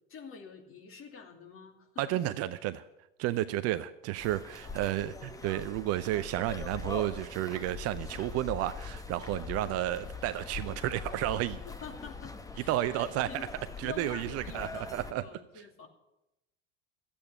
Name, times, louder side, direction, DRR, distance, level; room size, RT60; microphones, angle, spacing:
voice 1, 0.1-2.2 4.6-5.0 11.7-13.4 13.8-15.9, left 6 dB, 35° left, 3 dB, 2.7 m, -47 dB
voice 2, 2.0-2.9 3.2-11.6 12.7-13.5 13.8-15.4, right 14 dB, 40° right, 14 dB, 0.6 m, -32 dB
sound 1, 4.2-15.1, left 4 dB, 10° left, 1.1 m, -43 dB
13.5 x 8.7 x 8.4 m, 0.91 s
figure-of-eight pair, 75°, 39 cm